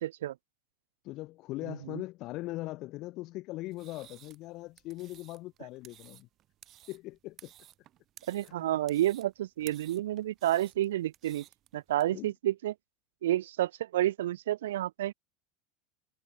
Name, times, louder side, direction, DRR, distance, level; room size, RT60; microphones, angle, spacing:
voice 1, 0.0-0.3 1.7-2.0 8.3-11.5 11.7-12.7 13.2-15.1, right 13 dB, 65° right, 0.3 m, -30 dB
voice 2, 1.0-6.3 6.9-7.5 8.4-8.5 12.1-12.3, left 19 dB, 45° left, 2.8 m, -40 dB
sound 1, 3.7-12.0, right 13 dB, 40° right, 2.8 m, -56 dB
figure-of-eight pair, 75°, 0 cm